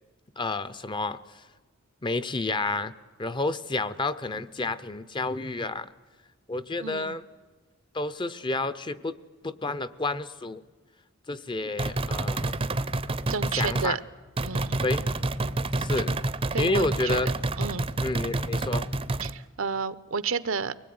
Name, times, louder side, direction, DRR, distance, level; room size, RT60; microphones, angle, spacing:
voice 1, 0.4-1.4 2.0-2.9 3.2-5.9 6.5-7.2 7.9-9.2 9.4-10.6 11.3-12.6 13.5-14.0 14.8-15.0 15.8-16.1 16.6-17.3 18.0-18.9, left 2 dB, 25° left, 15 dB, 0.7 m, -30 dB
voice 2, 6.8-7.2 13.3-14.0 14.4-14.8 16.5-17.3 17.6-17.9 19.2-20.7, right 5 dB, 70° right, 15 dB, 0.8 m, -31 dB
sound 1, 11.8-13.9 14.4-19.3, right 2 dB, 25° right, 0.7 m, -28 dB
24.0 x 19.5 x 9.5 m, 1.3 s
head